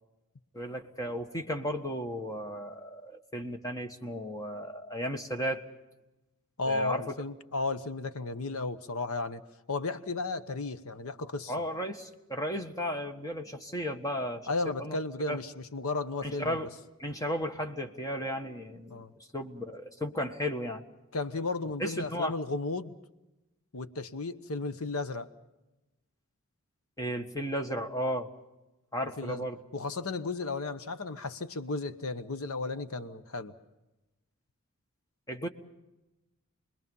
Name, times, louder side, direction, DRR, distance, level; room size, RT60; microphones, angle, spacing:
voice 1, 0.5-5.7 6.7-7.0 11.5-14.5 14.8-15.0 15.3-15.4 16.2-16.7 17.0-19.0 19.3-20.8 21.8-22.4 27.0-28.3 28.9-29.6 35.3-35.5, equal, 15° left, 1.5 m, -34 dB
voice 2, 6.6-9.4 9.7-11.5 14.5-16.6 18.9-19.1 21.1-22.9 23.7-25.3 29.2-29.4 29.7-33.5, left 3 dB, 70° left, 1.0 m, -34 dB
29.0 x 21.5 x 5.5 m
head